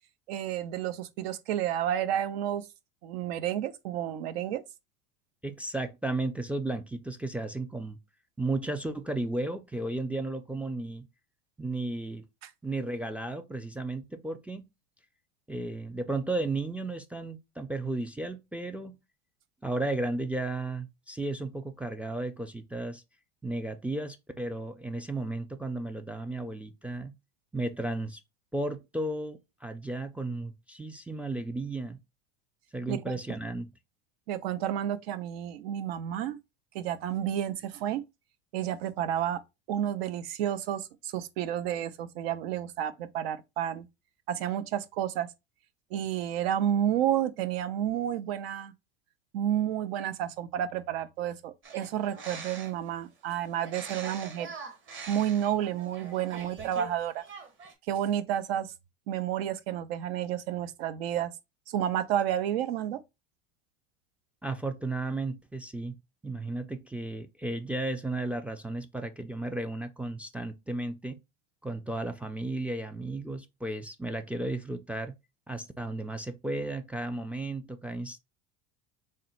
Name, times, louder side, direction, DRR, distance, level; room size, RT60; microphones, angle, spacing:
voice 1, 0.3-2.7 3.0-4.6 12.4-12.5 32.9-33.2 34.3-36.4 36.7-38.0 38.5-39.4 39.7-43.9 44.3-45.3 45.9-48.7 49.3-54.5 55.1-57.2 57.9-58.7 59.1-61.3 61.7-63.0, right 10 dB, 75° right, 0.7 m, -31 dB
voice 2, 5.4-8.0 8.4-11.1 11.6-12.3 12.6-14.7 15.5-19.0 19.6-23.0 23.4-27.1 27.5-28.2 28.5-32.0 32.7-33.7 64.4-66.0 66.2-71.2 71.6-75.1 75.5-78.2, right 2 dB, 5° right, 0.3 m, -34 dB
sound 1, 51.6-52.9 53.6-56.9 57.2-57.7, right 5 dB, 40° right, 1.2 m, -43 dB
3.6 x 2.2 x 4.2 m
supercardioid pair, 105°, 31 cm